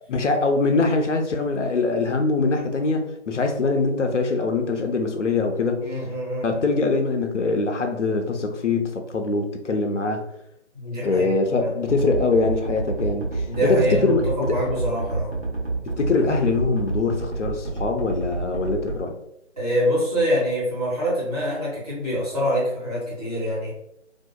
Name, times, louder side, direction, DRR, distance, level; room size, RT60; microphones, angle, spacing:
voice 1, 0.1-5.8 6.4-10.3 11.0-14.6 15.9-19.2, left 3 dB, 75° left, 5 dB, 0.5 m, -23 dB
voice 2, 5.8-6.5 10.7-11.3 11.6-11.7 13.4-15.3 19.6-23.7, equal, 30° right, -8 dB, 1.2 m, -25 dB
sound 1, 11.9-19.0, right 3 dB, 60° right, 1.0 m, -28 dB
2.7 x 2.3 x 2.2 m, 0.78 s
figure-of-eight pair, 160°, 37 cm